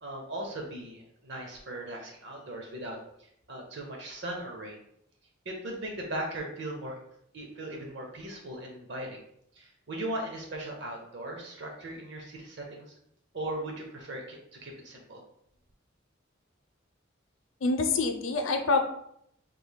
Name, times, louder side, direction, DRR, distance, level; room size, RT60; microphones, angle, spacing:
voice 1, 0.0-3.0 3.5-4.8 5.4-7.0 7.3-9.2 9.6-12.9 13.3-15.2, right 1 dB, 60° right, 1 dB, 0.9 m, -38 dB
voice 2, 17.6-18.8, left 3 dB, 85° left, 5 dB, 0.6 m, -26 dB
5.1 x 3.3 x 2.2 m, 0.72 s
head